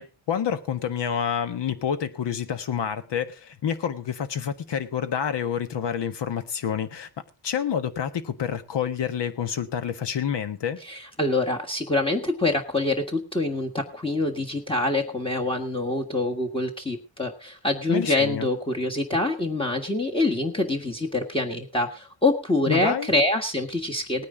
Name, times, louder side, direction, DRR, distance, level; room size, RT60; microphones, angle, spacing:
voice 1, 0.0-7.1 7.4-10.8 17.9-18.5 22.7-23.1, left 8 dB, 65° left, 10 dB, 1.5 m, -28 dB
voice 2, 10.8-24.2, left 2 dB, 10° left, 1 dB, 1.7 m, -25 dB
18.5 x 9.6 x 3.9 m, 0.30 s
wide cardioid pair, 130°, 46 cm